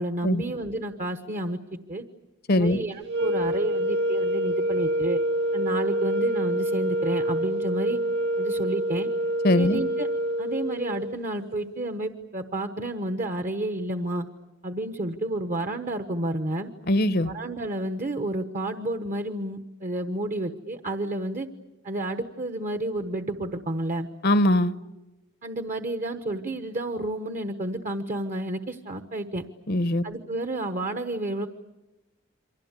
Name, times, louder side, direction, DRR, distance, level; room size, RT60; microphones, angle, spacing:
voice 1, 0.0-1.6 1.9-2.0 2.5-5.2 5.5-8.0 8.4-9.1 9.5-10.1 10.4-14.2 14.6-16.7 17.2-21.5 21.8-24.1 25.4-29.4 30.0-31.5, right 1 dB, 40° right, 8 dB, 1.2 m, -30 dB
sound 1, 3.0-11.2, right 1 dB, 60° right, 2.3 m, -26 dB
voice 2, 9.4-9.8 16.9-17.3 24.2-24.7 29.7-30.0, left 1 dB, 50° left, 14 dB, 0.9 m, -21 dB
29.0 x 24.0 x 8.2 m, 1.0 s
head